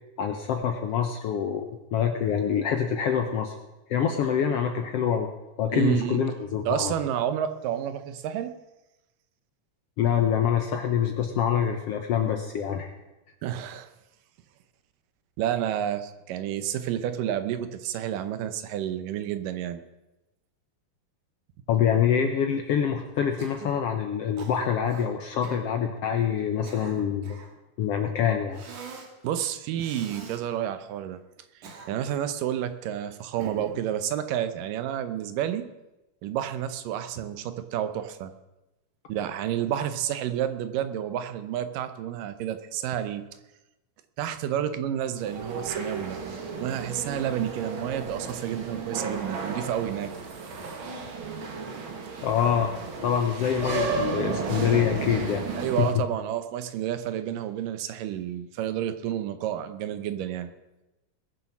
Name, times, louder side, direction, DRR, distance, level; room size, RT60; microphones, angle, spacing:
voice 1, 0.2-3.6 3.9-5.3 5.6-6.9 10.0-12.9 21.7-27.4 27.8-28.6 52.2-52.8 53.0-55.5 55.8-55.9, left 8 dB, 70° left, 5 dB, 1.4 m, -25 dB
voice 2, 5.7-6.2 6.7-8.5 13.4-13.9 15.4-19.8 29.2-31.2 31.6-35.7 36.2-38.3 39.1-43.2 44.2-46.2 46.6-50.1 55.6-60.5, right 10 dB, 90° right, 10 dB, 2.5 m, -30 dB
Cough, 23.4-23.8 24.4-25.1 25.4-25.7 26.4-27.6 28.5-29.1 29.8-30.4 31.4-32.2 33.4-33.9, right 5 dB, 70° right, 3.2 m, -43 dB
sound 1, 45.2-55.9, right 4 dB, 50° right, 1.8 m, -33 dB
20.5 x 7.1 x 6.0 m, 1.0 s
omnidirectional pair, 3.7 m